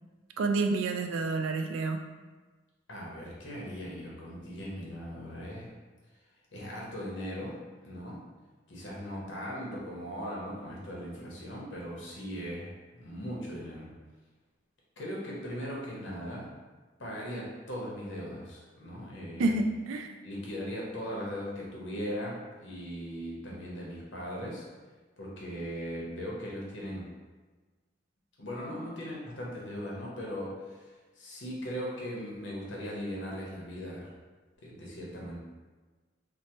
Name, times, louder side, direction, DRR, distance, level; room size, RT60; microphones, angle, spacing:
voice 1, 0.4-2.0 19.4-20.1, right 3 dB, 90° right, 7 dB, 0.3 m, -29 dB
voice 2, 2.9-5.7 6.5-7.6 7.8-8.2 8.7-13.9 15.0-16.5 17.0-19.6 20.2-24.7 25.2-27.1 28.4-34.1 34.6-35.4, equal, 70° left, -3 dB, 0.8 m, -39 dB
3.2 x 2.0 x 2.9 m, 1.3 s
head